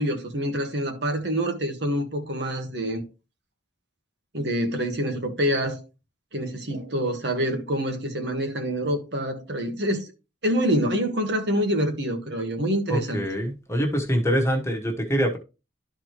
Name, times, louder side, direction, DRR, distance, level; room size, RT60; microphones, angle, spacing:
voice 1, 0.0-3.0 4.3-5.8 6.3-10.1 10.4-13.2, equal, 60° right, 1.5 m, -26 dB
voice 2, 12.9-15.4, equal, 15° left, 1.3 m, -24 dB
12.5 x 4.5 x 3.1 m
head